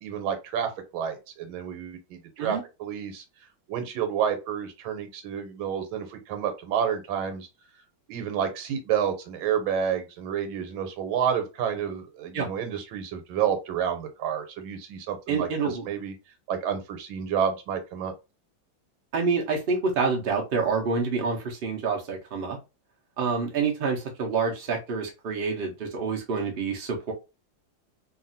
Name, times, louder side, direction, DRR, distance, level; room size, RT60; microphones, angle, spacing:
voice 1, 0.0-3.2 3.7-7.5 8.1-16.1 16.5-18.1, right 8 dB, 85° right, 6 dB, 1.5 m, -29 dB
voice 2, 15.3-15.8 19.1-22.6 23.2-27.1, right 5 dB, 65° right, 0 dB, 0.5 m, -27 dB
2.8 x 2.6 x 2.6 m, 0.27 s
omnidirectional pair, 2.1 m